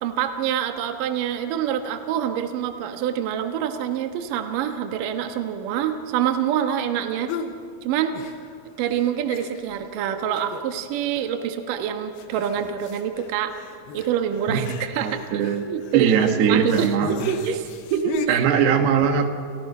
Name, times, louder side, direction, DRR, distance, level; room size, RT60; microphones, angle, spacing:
voice 1, 0.0-7.3 7.8-8.1 8.8-13.6 13.9-18.5, right 9 dB, 65° right, 6 dB, 2.7 m, -26 dB
sound 1, 7.3-7.6 8.1-8.7 8.9-9.0 9.3-9.9 10.4-10.9 11.2-11.3 12.2-18.3, left 7 dB, 80° left, 3.3 m, -37 dB
voice 2, 14.5-15.7 15.9-17.2 18.3-19.3, right 7 dB, 85° right, 6 dB, 3.6 m, -21 dB
29.5 x 29.0 x 5.5 m, 2.2 s
omnidirectional pair, 4.5 m